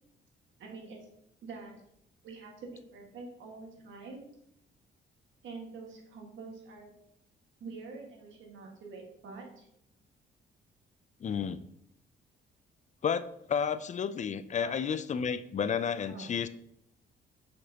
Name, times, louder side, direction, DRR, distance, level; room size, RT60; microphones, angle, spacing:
voice 1, 0.6-1.0 1.4-1.7 2.2-4.3 5.4-6.9 7.6-9.7 14.6-14.8 16.1-16.3, right 4 dB, 70° right, 0 dB, 1.8 m, -46 dB
voice 2, 11.2-11.7 13.0-16.5, left 7 dB, 35° left, 14 dB, 0.4 m, -31 dB
6.2 x 5.2 x 2.9 m, 0.74 s
cardioid pair, 90°, 20 cm